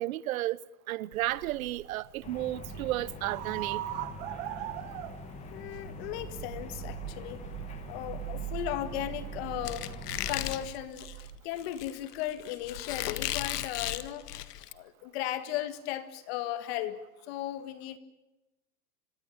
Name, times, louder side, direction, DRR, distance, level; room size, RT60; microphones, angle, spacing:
voice 1, 0.0-3.8, right 15 dB, 65° right, 0.9 m, -33 dB
sound 1, 1.1-11.4, right 16 dB, 40° right, 1.3 m, -41 dB
sound 2, 2.2-10.7, left 4 dB, 15° left, 1.4 m, -45 dB
voice 2, 5.5-7.5 7.9-9.9 10.3-14.4 14.7-18.0, left 12 dB, 40° left, 1.9 m, -36 dB
Squeak, 9.6-14.7, left 13 dB, 85° left, 1.8 m, -36 dB
26.5 x 20.0 x 8.8 m
supercardioid pair, 175°, 46 cm